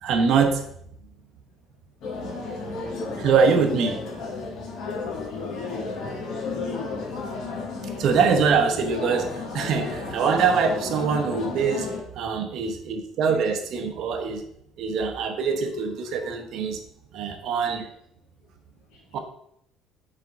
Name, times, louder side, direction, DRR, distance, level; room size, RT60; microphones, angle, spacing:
voice 1, 0.0-0.6 3.2-4.0 8.0-11.9 12.2-14.4 14.8-16.8 17.1-17.9 19.1-19.2, right 5 dB, 60° right, 6 dB, 0.9 m, -23 dB
sound 1, 2.0-12.0, left 3 dB, 60° left, 1.6 m, -33 dB
voice 2, 4.8-6.0 6.2-7.0 17.4-17.5 18.9-19.0, left 5 dB, 85° left, 0 dB, 1.1 m, -37 dB
5.1 x 4.2 x 5.4 m, 0.71 s
cardioid pair, 145°, 0 cm